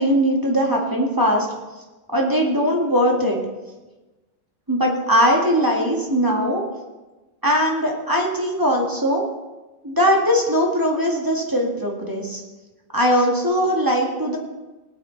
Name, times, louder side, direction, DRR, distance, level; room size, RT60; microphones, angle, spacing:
voice 1, 0.0-1.5 2.1-3.4 4.7-6.6 7.4-9.2 9.8-12.4 12.9-14.4, equal, 10° right, -1 dB, 1.8 m, -20 dB
20.0 x 8.8 x 4.0 m, 1.1 s
omnidirectional pair, 2.2 m